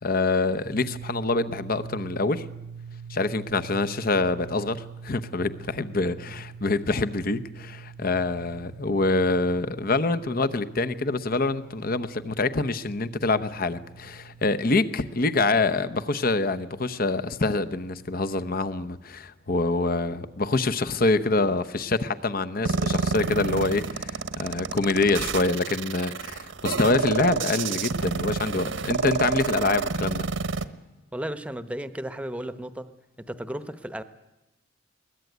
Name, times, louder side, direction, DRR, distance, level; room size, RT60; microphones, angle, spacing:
voice 1, 0.0-2.4 3.1-30.3, left 3 dB, 50° left, 0.9 m, -26 dB
sound 1, 0.7-18.5, right 6 dB, 50° right, 0.8 m, -44 dB
sound 2, 22.6-30.6, right 4 dB, 70° right, 1.1 m, -28 dB
voice 2, 31.1-32.9 33.2-34.0, right 1 dB, 5° right, 0.9 m, -34 dB
22.0 x 19.0 x 9.3 m
head